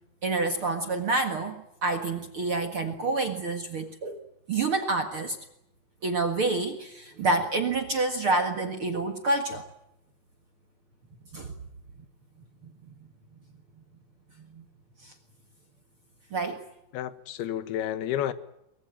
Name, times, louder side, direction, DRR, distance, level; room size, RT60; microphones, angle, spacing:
voice 1, 0.2-1.6 1.8-4.2 4.5-5.4 6.0-9.6 11.3-11.5 12.6-12.7 14.5-14.6 15.0-15.1 16.3-16.6, right 3 dB, 55° right, 1.6 m, -28 dB
voice 2, 16.9-18.3, left 11 dB, 70° left, 3.1 m, -30 dB
23.5 x 22.0 x 9.0 m
omnidirectional pair, 5.0 m